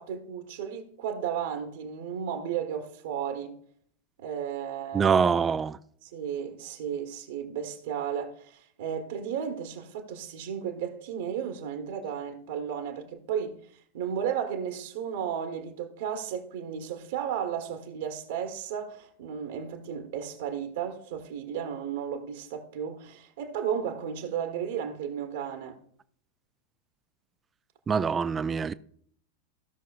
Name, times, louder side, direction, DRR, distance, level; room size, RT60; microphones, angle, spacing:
voice 1, 0.0-3.6 4.2-5.2 6.0-13.6 13.9-25.8, right 8 dB, 55° right, 1.2 m, -34 dB
voice 2, 4.9-5.8 27.9-28.7, right 6 dB, 20° right, 0.4 m, -24 dB
16.0 x 6.1 x 2.4 m
figure-of-eight pair, 90°, 0 cm